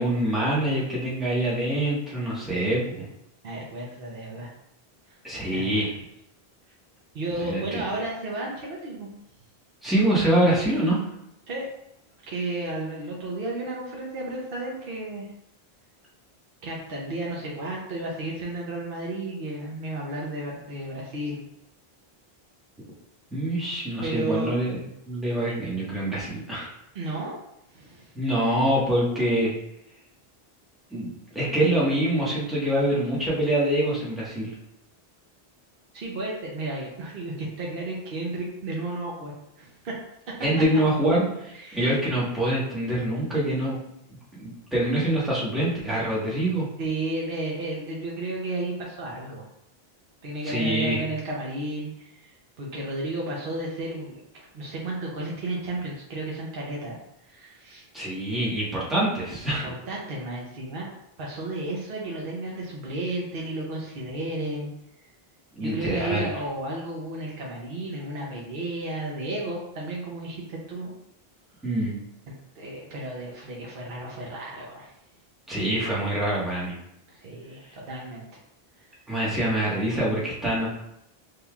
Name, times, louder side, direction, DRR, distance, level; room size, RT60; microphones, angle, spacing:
voice 1, 0.0-3.0 5.2-6.0 7.4-7.8 9.8-11.0 23.3-24.8 25.1-26.7 28.1-29.5 30.9-34.5 40.4-43.8 44.4-46.7 50.4-51.0 57.9-59.7 65.6-66.3 71.6-71.9 75.5-76.8 79.1-80.7, right 1 dB, ahead, -8 dB, 1.3 m, -25 dB
voice 2, 3.4-4.5 5.1-5.2 5.5-5.9 7.1-9.1 11.5-11.7 12.3-15.3 16.6-21.4 24.0-24.5 26.9-27.3 27.7-28.1 35.9-40.0 40.3-40.4 41.5-41.9 46.8-49.5 50.2-57.0 57.2-57.8 59.5-60.9 61.2-64.7 65.6-70.9 72.3-74.9 77.1-78.2, right 2 dB, 65° right, -3 dB, 1.0 m, -33 dB
5.5 x 3.5 x 2.3 m, 0.81 s
omnidirectional pair, 1.0 m